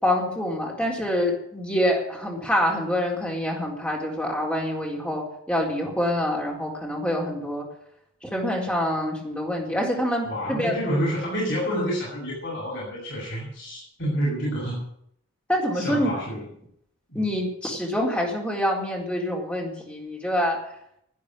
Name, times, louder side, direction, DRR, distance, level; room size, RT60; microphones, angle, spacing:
voice 1, 0.0-7.7 8.2-10.7 15.5-16.1 17.1-20.6, equal, 5° left, -3 dB, 4.2 m, -26 dB
voice 2, 10.2-14.8 15.7-16.4 17.1-17.2, equal, 55° left, -6 dB, 6.8 m, -28 dB
12.0 x 9.5 x 10.0 m, 0.72 s
head